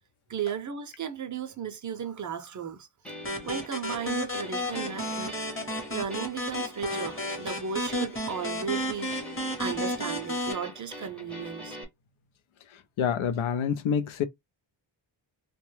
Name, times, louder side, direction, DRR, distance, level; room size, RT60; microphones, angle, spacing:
voice 1, 0.3-2.9 3.4-5.4 5.9-9.1 9.6-11.8, right 7 dB, 40° right, 0.5 m, -35 dB
sound 1, 3.0-11.8, left 1 dB, 5° left, 0.6 m, -43 dB
sound 2, 3.2-10.5, equal, 25° left, 0.9 m, -33 dB
voice 2, 13.0-14.2, left 7 dB, 85° left, 0.6 m, -27 dB
2.8 x 2.2 x 3.1 m
wide cardioid pair, 140°, 47 cm